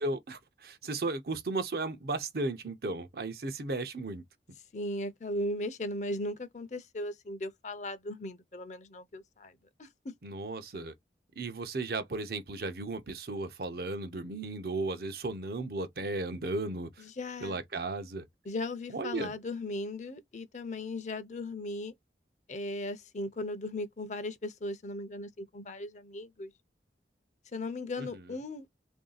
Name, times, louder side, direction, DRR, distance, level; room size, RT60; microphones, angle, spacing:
voice 1, 0.0-4.2 10.2-10.9 11.4-17.0 17.4-18.3 18.9-19.3 28.0-28.1, right 2 dB, 55° right, 0.6 m, -35 dB
voice 2, 4.7-10.1 17.0-17.6 18.4-21.9 22.5-26.5 27.5-28.7, left 1 dB, 40° left, 0.6 m, -37 dB
3.1 x 2.6 x 3.9 m
head